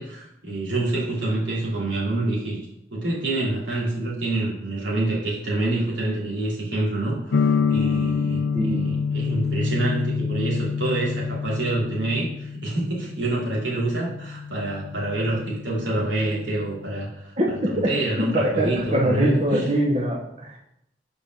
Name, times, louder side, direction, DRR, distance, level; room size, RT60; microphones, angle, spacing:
voice 1, 0.0-2.6 2.9-19.7, right 2 dB, 85° right, -5 dB, 2.7 m, -27 dB
sound 1, 7.3-17.1, left 5 dB, 85° left, 0.4 m, -28 dB
voice 2, 8.5-8.9 17.4-17.9 18.2-20.6, right 1 dB, 35° right, -2 dB, 0.9 m, -23 dB
5.1 x 5.0 x 6.0 m, 0.78 s
head